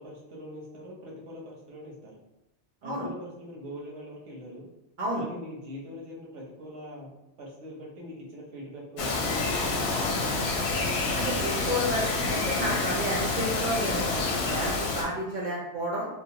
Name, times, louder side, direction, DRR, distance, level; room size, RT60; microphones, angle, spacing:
voice 1, 0.0-2.2 2.8-4.7 5.1-7.1 7.4-10.6, equal, 85° right, -3 dB, 1.2 m, -42 dB
Bird vocalization bird call bird song, 9.0-15.0, left 3 dB, 70° left, 0.8 m, -28 dB
voice 2, 11.1-16.1, equal, 55° right, -3 dB, 0.6 m, -31 dB
2.9 x 2.0 x 2.8 m, 0.90 s
omnidirectional pair, 1.2 m